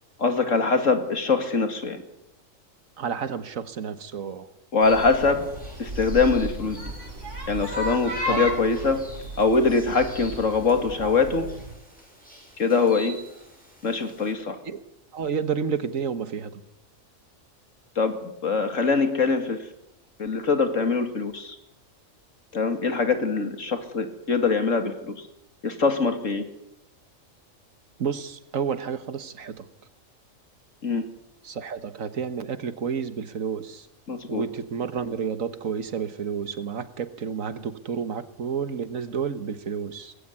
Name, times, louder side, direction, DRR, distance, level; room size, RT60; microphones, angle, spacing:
voice 1, 0.2-2.0 4.7-5.4 5.8-6.8 7.5-9.0 9.4-11.5 12.6-13.2 13.8-14.6 18.0-19.6 20.2-21.6 22.5-25.1 25.6-26.4 30.8-31.0 34.1-34.4, left 4 dB, 70° left, 7 dB, 2.8 m, -23 dB
voice 2, 3.0-4.5 8.3-8.5 14.7-14.8 15.1-16.6 28.0-29.7 31.4-33.9 34.3-40.1, right 6 dB, 75° right, 12 dB, 1.7 m, -30 dB
sound 1, 4.8-14.3, equal, 5° left, 6.6 m, -48 dB
sound 2, 4.8-11.7, equal, 60° right, 4.6 m, -34 dB
19.5 x 16.5 x 9.7 m, 0.81 s
omnidirectional pair, 1.4 m